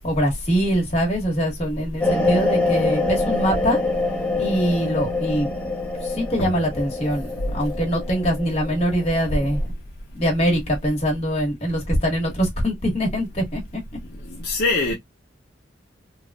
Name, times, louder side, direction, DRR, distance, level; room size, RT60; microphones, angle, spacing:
voice 1, 0.0-3.8 4.4-5.5 6.0-9.6 10.1-13.8, equal, 35° left, 1.3 m, -23 dB
sound 1, 2.0-9.6, left 2 dB, 5° left, 0.5 m, -25 dB
voice 2, 14.4-14.9, left 3 dB, 55° left, 0.7 m, -23 dB
3.1 x 2.4 x 2.2 m
head